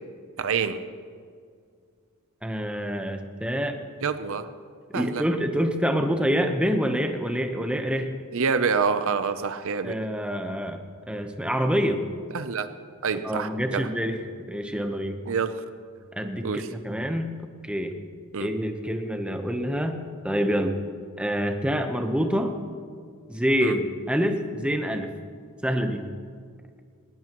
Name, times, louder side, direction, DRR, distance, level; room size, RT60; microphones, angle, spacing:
voice 1, 0.4-0.8 4.0-4.4 4.9-5.2 8.3-10.0 12.3-12.7 13.0-13.9 15.2-15.6 16.4-16.7 18.3-18.5 23.6-23.8, right 5 dB, 65° right, 10 dB, 0.7 m, -27 dB
voice 2, 2.4-3.8 4.9-8.1 9.8-10.8 11.1-12.0 13.2-14.2 14.5-15.2 16.1-17.3 17.7-17.9 18.4-20.0 20.2-20.7 21.2-22.6 23.3-25.1 25.6-26.1, equal, 5° right, 5 dB, 1.0 m, -26 dB
19.5 x 18.5 x 3.1 m, 2.1 s
head